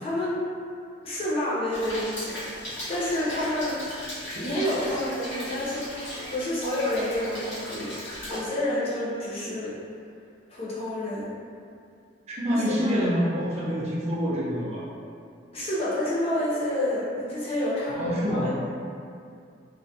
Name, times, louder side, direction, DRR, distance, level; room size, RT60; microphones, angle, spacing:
voice 1, 0.0-0.4 1.0-3.8 4.3-8.0 8.3-9.7 10.5-11.3 12.8-12.9 15.5-18.5, left 1 dB, 30° left, -8 dB, 0.5 m, -29 dB
Rain, 1.7-8.4, left 1 dB, 70° left, 0.8 m, -37 dB
voice 2, 12.3-14.8 17.9-18.5, equal, 35° right, -7 dB, 0.4 m, -26 dB
2.2 x 2.1 x 2.6 m, 2.4 s
head